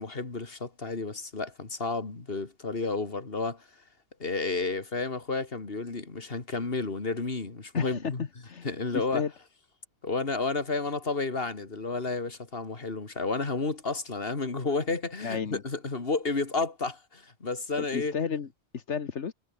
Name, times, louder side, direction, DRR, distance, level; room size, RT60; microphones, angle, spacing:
voice 1, 0.0-3.7 4.2-8.3 8.6-9.2 10.0-18.1, left 3 dB, 55° left, 2.8 m, -31 dB
voice 2, 7.7-8.7 8.9-9.3 15.2-15.6 17.8-18.5 18.7-19.3, left 6 dB, 75° left, 1.7 m, -32 dB
omnidirectional pair, 1.2 m